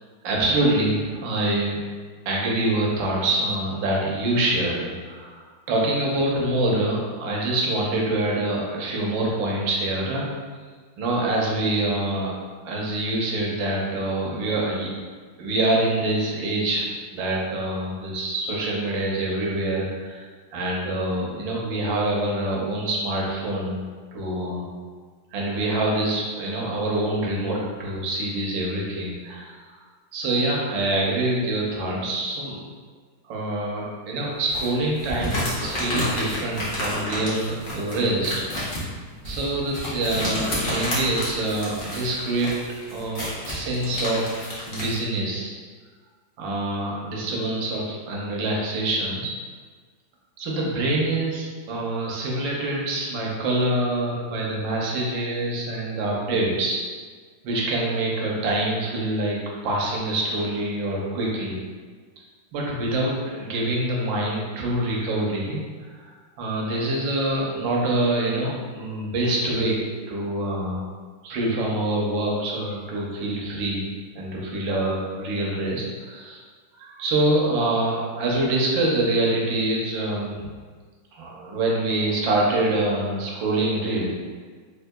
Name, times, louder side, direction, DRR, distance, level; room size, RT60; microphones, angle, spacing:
voice 1, 0.2-1.8 2.3-10.3 11.0-12.4 12.6-14.9 15.4-16.9 17.1-23.8 24.1-24.6 25.3-29.6 30.1-32.6 33.3-38.3 39.2-42.5 42.9-45.5 46.4-49.3 50.4-56.8 57.4-61.6 62.5-65.6 65.9-69.8 70.1-70.8 71.2-73.9 74.2-76.4 76.7-80.5 81.1-84.1, right 1 dB, 75° right, -3 dB, 1.3 m, -25 dB
sound 1, 34.5-45.0, left 1 dB, 65° left, 0.5 m, -30 dB
3.5 x 3.0 x 2.2 m, 1.5 s
omnidirectional pair, 2.2 m